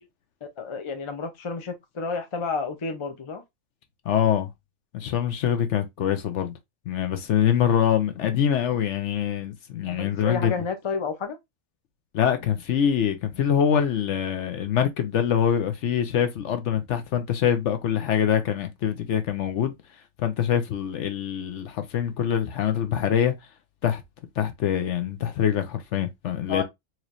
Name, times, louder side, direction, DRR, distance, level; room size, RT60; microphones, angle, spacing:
voice 1, 0.4-3.4 9.9-11.4 26.5-26.6, left 5 dB, 35° left, 0.5 m, -30 dB
voice 2, 4.1-4.5 4.9-6.5 6.9-10.6 12.1-19.7 20.2-23.3 23.8-24.0 24.4-26.6, left 9 dB, 65° left, 0.9 m, -24 dB
4.4 x 3.1 x 2.5 m
omnidirectional pair, 1.4 m